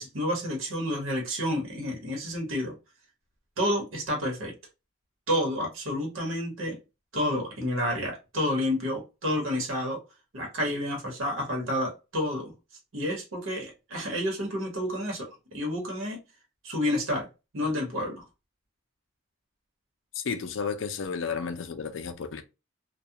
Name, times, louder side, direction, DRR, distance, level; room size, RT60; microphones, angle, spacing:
voice 1, 0.0-2.8 3.6-4.5 5.3-6.8 7.1-10.0 10.3-12.5 12.9-16.2 16.6-17.3 17.5-18.2, left 1 dB, 90° right, 1.1 m, -30 dB
voice 2, 20.1-22.4, left 5 dB, 75° left, 0.4 m, -32 dB
2.4 x 2.2 x 2.7 m
head